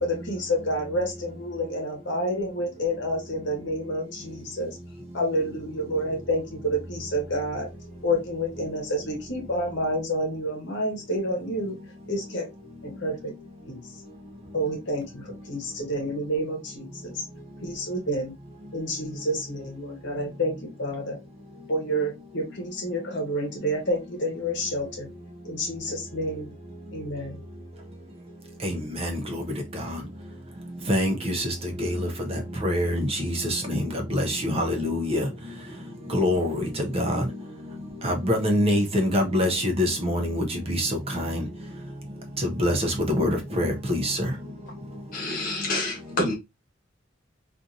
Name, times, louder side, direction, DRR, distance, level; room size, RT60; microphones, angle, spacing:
voice 1, 0.0-4.8 5.1-7.7 8.0-11.8 12.1-12.5 12.8-13.3 13.7-13.8 14.5-17.2 17.6-18.3 18.7-21.2 21.7-25.1 25.4-26.5 26.9-27.4, equal, 65° left, 0.9 m, -29 dB
voice 2, 28.6-29.4 29.7-30.0 30.9-35.3 36.1-37.2 38.0-41.5 42.4-44.3, left 1 dB, 30° right, 0.6 m, -25 dB
voice 3, 45.1-46.3, left 2 dB, 45° left, 1.2 m, -28 dB
2.7 x 2.5 x 2.4 m
head